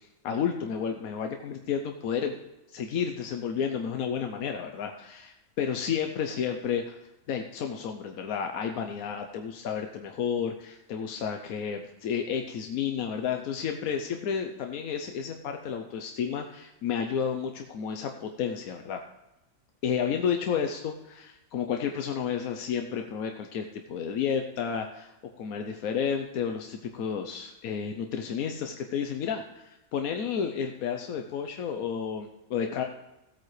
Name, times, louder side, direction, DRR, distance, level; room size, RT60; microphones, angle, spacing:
voice 1, 0.0-2.4 2.7-7.0 7.3-19.0 19.8-32.8, left 7 dB, 85° left, 5 dB, 1.2 m, -31 dB
16.5 x 8.6 x 3.2 m, 0.97 s
omnidirectional pair, 1.5 m